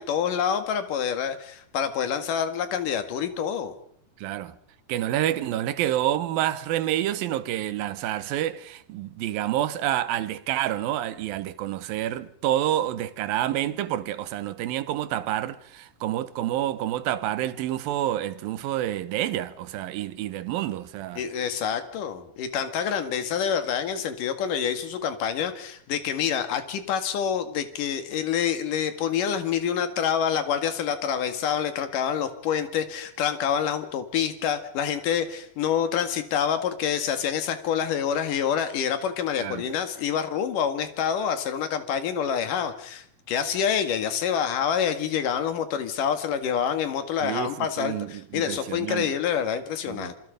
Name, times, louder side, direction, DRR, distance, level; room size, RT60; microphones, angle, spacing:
voice 1, 0.0-3.7 21.2-50.1, left 8 dB, 65° left, 3.4 m, -27 dB
voice 2, 4.2-4.6 4.9-21.2 39.4-39.7 47.2-49.1 49.9-50.1, right 12 dB, 80° right, 2.9 m, -28 dB
27.5 x 24.5 x 5.2 m
omnidirectional pair, 4.1 m